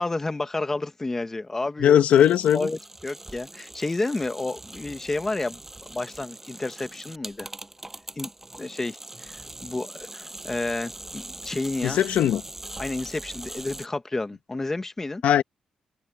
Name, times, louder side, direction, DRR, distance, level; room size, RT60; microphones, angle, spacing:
voice 1, 0.0-2.2 2.5-5.6 5.9-7.5 8.2-8.3 8.6-12.0 12.8-15.2, left 2 dB, 15° left, 1.5 m, -30 dB
voice 2, 1.8-2.7 11.8-12.4 15.2-15.4, left 10 dB, 85° left, 1.6 m, -19 dB
sound 1, 1.9-13.9, right 2 dB, 10° right, 6.2 m, -42 dB
open air
cardioid pair, 135°, 2 cm